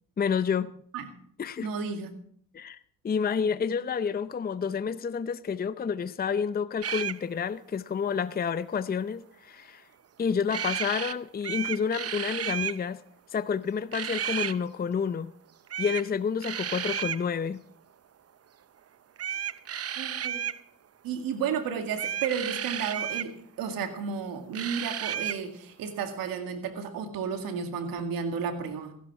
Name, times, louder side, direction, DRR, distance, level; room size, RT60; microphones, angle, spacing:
voice 1, 0.2-0.8 1.4-1.7 2.5-2.8 3.0-9.9 10.2-13.0 13.3-15.3 15.8-17.6, left 6 dB, 25° left, 0.6 m, -29 dB
voice 2, 1.6-2.2 20.0-20.4 21.0-28.9, right 6 dB, 80° right, 2.1 m, -32 dB
sound 1, 6.8-7.2 10.5-11.1 11.4-12.8 13.9-14.6 15.7-16.1 16.4-17.2 19.2-20.6 21.9-23.3 24.5-25.4, right 9 dB, 45° right, 0.8 m, -32 dB
15.5 x 12.0 x 4.7 m
supercardioid pair, 60°, 34 cm